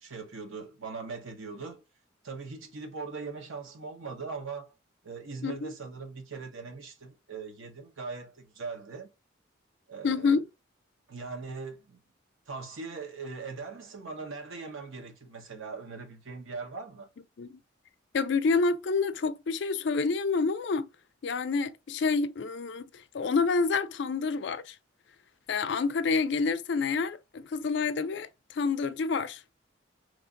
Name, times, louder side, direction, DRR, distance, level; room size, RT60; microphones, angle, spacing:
voice 1, 0.0-1.8 2.2-4.7 5.0-9.1 9.9-10.4 11.1-12.0 12.5-17.1, right 4 dB, 80° right, 0.9 m, -40 dB
voice 2, 5.4-5.7 10.0-10.4 17.4-17.6 18.1-20.9 21.2-24.8 25.5-29.4, left 4 dB, 60° left, 0.4 m, -28 dB
3.1 x 2.5 x 3.7 m
head